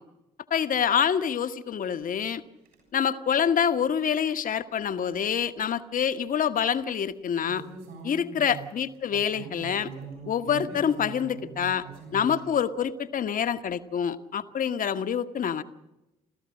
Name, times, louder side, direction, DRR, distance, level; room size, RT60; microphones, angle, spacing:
voice 1, 0.5-2.4 2.9-7.6 8.0-9.9 10.2-11.8 12.1-15.6, left 8 dB, 45° left, 10 dB, 1.1 m, -26 dB
sound 1, 2.6-2.8 7.5-12.4, right 5 dB, 65° right, 7.6 m, -41 dB
28.0 x 14.5 x 6.4 m, 0.95 s
figure-of-eight pair, 40°, 19 cm